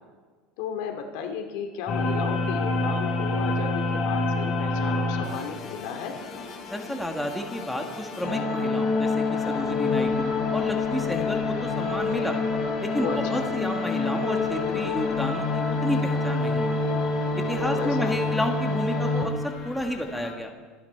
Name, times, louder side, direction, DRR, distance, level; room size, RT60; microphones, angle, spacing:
voice 1, 0.6-6.2 13.0-13.5 17.6-18.2, left 7 dB, 75° left, 4 dB, 2.4 m, -34 dB
sound 1, 1.9-20.3, left 3 dB, 40° left, 3.9 m, -27 dB
voice 2, 6.7-12.4 12.8-16.9 17.4-20.5, left 1 dB, 5° left, 3 dB, 1.6 m, -31 dB
26.0 x 10.0 x 4.6 m, 1.5 s
supercardioid pair, 130°, 0 cm